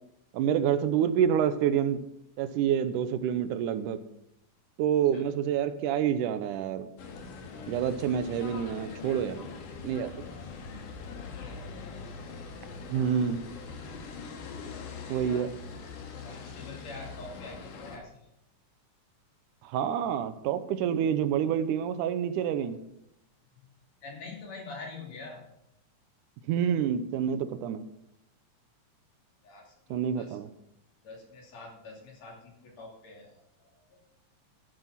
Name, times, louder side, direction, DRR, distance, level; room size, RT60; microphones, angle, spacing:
voice 1, 0.3-2.0 2.4-4.0 4.8-6.9 7.7-9.5 9.8-10.1 12.9-13.4 15.1-15.5 19.6-22.8 26.5-27.8 29.9-30.5, right 9 dB, 90° right, 11 dB, 2.3 m, -27 dB
sound 1, 7.0-18.0, left 4 dB, 80° left, 3.2 m, -42 dB
voice 2, 10.2-10.6 11.1-11.6 15.3-15.6 16.2-18.3 23.5-25.5 29.4-30.4 31.0-34.0, left 3 dB, 60° left, 0 dB, 3.9 m, -46 dB
13.5 x 7.7 x 5.8 m, 0.80 s
omnidirectional pair, 3.6 m